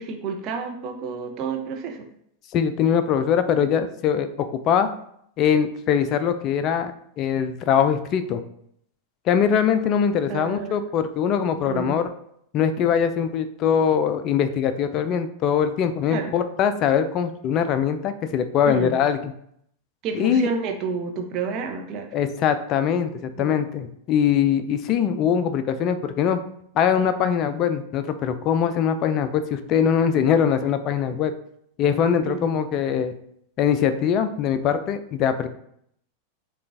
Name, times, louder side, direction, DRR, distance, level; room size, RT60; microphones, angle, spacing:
voice 1, 0.0-2.1 10.3-10.7 11.7-12.0 16.1-16.4 18.6-19.0 20.0-22.1 23.4-23.5 32.2-32.5, right 5 dB, 35° right, 3 dB, 0.6 m, -30 dB
voice 2, 2.5-4.9 5.4-8.4 9.3-12.0 12.5-19.3 20.1-20.5 22.1-26.4 26.7-31.3 31.8-33.1 33.6-35.5, left 8 dB, 35° left, 10 dB, 0.4 m, -22 dB
6.5 x 2.3 x 2.6 m, 0.71 s
figure-of-eight pair, 90°, 0 cm